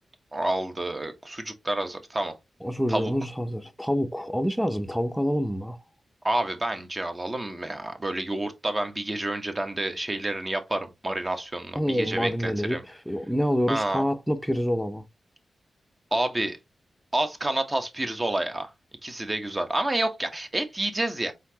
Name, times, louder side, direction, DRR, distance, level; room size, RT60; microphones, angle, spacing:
voice 1, 0.3-2.3 2.9-3.1 6.2-12.8 13.7-14.0 16.1-16.6 17.1-18.7 19.0-21.3, right 1 dB, 25° right, 1.1 m, -29 dB
voice 2, 2.6-5.8 11.8-12.8 13.1-15.0, equal, ahead, 0.7 m, -27 dB
4.3 x 3.8 x 2.8 m
cardioid pair, 65°, 0 cm